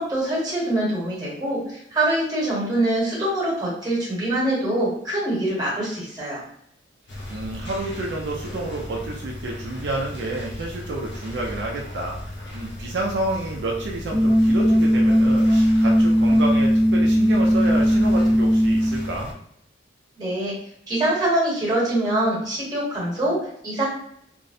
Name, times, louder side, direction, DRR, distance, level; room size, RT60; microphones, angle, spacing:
voice 1, 0.0-6.4 20.2-20.6 20.9-23.8, right 1 dB, 20° right, -7 dB, 1.0 m, -24 dB
sound 1, 7.1-19.3, left 1 dB, 70° left, 0.5 m, -36 dB
voice 2, 7.3-12.2 12.5-19.3, right 2 dB, 75° right, -1 dB, 0.4 m, -29 dB
sound 2, 14.1-19.1, equal, 20° left, 0.7 m, -18 dB
2.5 x 2.0 x 2.5 m, 0.72 s
head